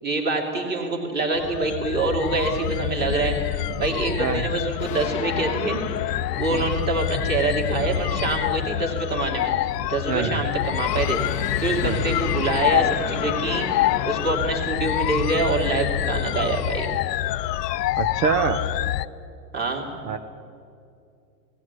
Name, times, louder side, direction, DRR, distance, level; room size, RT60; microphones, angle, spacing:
voice 1, 0.0-3.4 3.8-5.8 6.4-13.7 14.0-16.9 19.5-19.9, right 3 dB, 20° right, 1 dB, 2.9 m, -26 dB
sound 1, 1.4-19.1, left 13 dB, 70° left, 0.7 m, -26 dB
sound 2, 4.8-7.9 10.8-16.0, left 9 dB, 15° left, 0.6 m, -36 dB
voice 2, 10.1-10.4 11.8-12.0 18.0-18.6 20.0-20.2, right 7 dB, 65° right, 8 dB, 1.2 m, -25 dB
17.5 x 16.0 x 9.6 m, 2.5 s
supercardioid pair, 155°, 50 cm